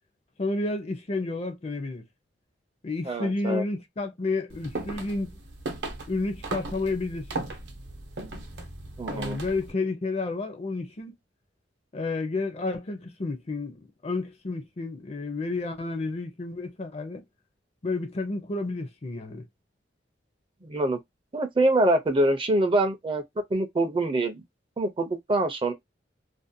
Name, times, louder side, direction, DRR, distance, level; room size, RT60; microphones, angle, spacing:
voice 1, 0.4-2.0 2.8-5.3 6.0-7.5 9.1-11.1 11.9-17.2 17.8-19.5, left 3 dB, 35° left, 0.5 m, -31 dB
voice 2, 3.1-3.6 9.0-9.4 20.6-21.0 21.3-23.2 23.5-24.4 24.8-25.7, right 1 dB, 30° right, 0.4 m, -25 dB
sound 1, 4.5-9.7, right 2 dB, 70° right, 0.7 m, -37 dB
2.5 x 2.1 x 2.5 m
head